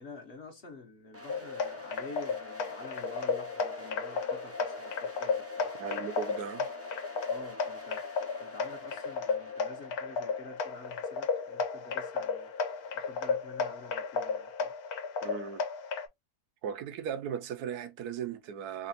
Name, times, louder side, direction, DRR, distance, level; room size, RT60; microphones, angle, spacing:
voice 1, 0.0-5.7 7.3-8.0 8.4-12.5 12.9-14.7, left 3 dB, 50° left, 1.0 m, -48 dB
sound 1, 1.1-14.0, left 2 dB, 20° right, 0.4 m, -48 dB
sound 2, 1.3-16.1, left 5 dB, 70° left, 1.2 m, -34 dB
voice 2, 5.8-6.7 15.2-15.6 16.6-18.9, right 8 dB, 80° right, 1.2 m, -37 dB
4.0 x 2.9 x 2.7 m
omnidirectional pair, 1.7 m